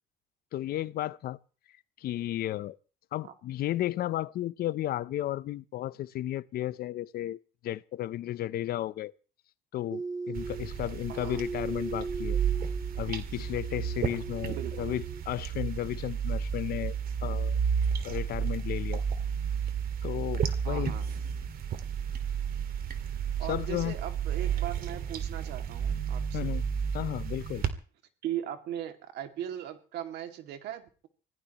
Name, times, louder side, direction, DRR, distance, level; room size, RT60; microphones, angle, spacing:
voice 1, 0.5-1.4 2.0-2.8 3.1-9.1 9.7-12.4 13.0-17.0 17.2-17.6 18.0-19.0 20.0-20.9 23.4-24.0 26.3-26.6 26.9-27.6, left 13 dB, 65° left, 0.7 m, -34 dB
sound 1, 9.9-15.2, right 3 dB, 20° right, 1.0 m, -39 dB
sound 2, 10.3-27.7, right 7 dB, 60° right, 2.1 m, -32 dB
voice 2, 11.1-11.5 14.5-14.9 20.6-21.1 23.4-26.5 28.2-31.1, right 11 dB, 80° right, 2.4 m, -39 dB
25.0 x 17.0 x 3.1 m
cardioid pair, 110°, 17 cm